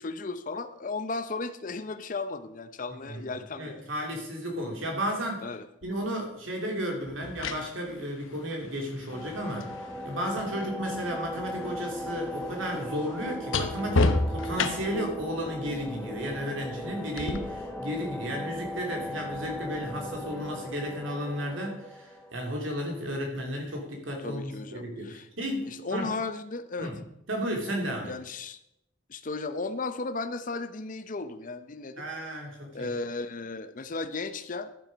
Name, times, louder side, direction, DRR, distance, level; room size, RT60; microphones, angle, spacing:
voice 1, 0.0-3.8 5.4-5.7 24.2-25.3 25.7-26.9 28.0-28.6 29.1-32.0 32.7-34.7, left 3 dB, 40° left, 11 dB, 0.6 m, -35 dB
voice 2, 2.9-5.5 5.8-26.1 26.8-27.0 27.3-28.1 32.0-32.9, equal, 75° right, 1 dB, 2.8 m, -33 dB
sound 1, 5.8-6.0 7.1-11.1 11.4-15.1 17.2-17.4, left 3 dB, 80° left, 0.9 m, -31 dB
sound 2, 9.1-22.7, equal, 10° left, 1.1 m, -38 dB
11.5 x 7.4 x 5.2 m, 0.82 s
head